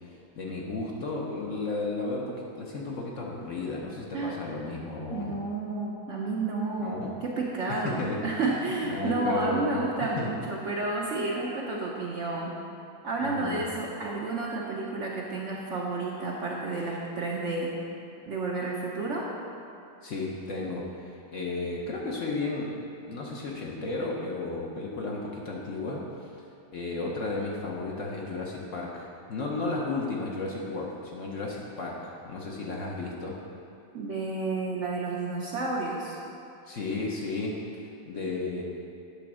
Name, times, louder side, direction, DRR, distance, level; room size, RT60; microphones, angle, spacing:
voice 1, 0.0-5.3 6.8-7.1 7.7-8.2 8.5-8.6 8.8-10.3 13.2-13.6 20.0-22.7 23.0-26.3 26.7-33.4 36.7-37.6 38.1-38.6, left 3 dB, 55° left, -3 dB, 1.0 m, -33 dB
voice 2, 5.1-12.6 13.0-17.8 18.3-19.3 33.9-36.2, right 3 dB, 60° right, -3 dB, 0.8 m, -31 dB
8.5 x 3.8 x 6.1 m, 2.6 s
omnidirectional pair, 1.9 m